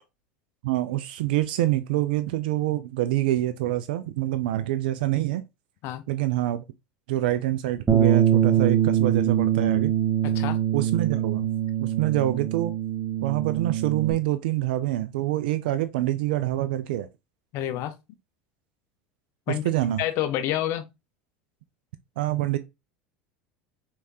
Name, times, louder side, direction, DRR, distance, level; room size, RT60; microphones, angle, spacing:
voice 1, 0.6-5.4 6.1-6.6 7.1-9.9 10.7-11.5 11.8-12.7 13.2-17.1 19.5-20.0 22.2-22.6, right 14 dB, 75° right, 0.4 m, -26 dB
Bass guitar, 7.9-14.1, right 10 dB, 30° right, 1.0 m, -23 dB
voice 2, 10.2-10.6 17.5-17.9 19.5-19.6 20.0-20.9, left 12 dB, 60° left, 0.7 m, -28 dB
4.6 x 3.4 x 2.7 m
hypercardioid pair, 90°, 5 cm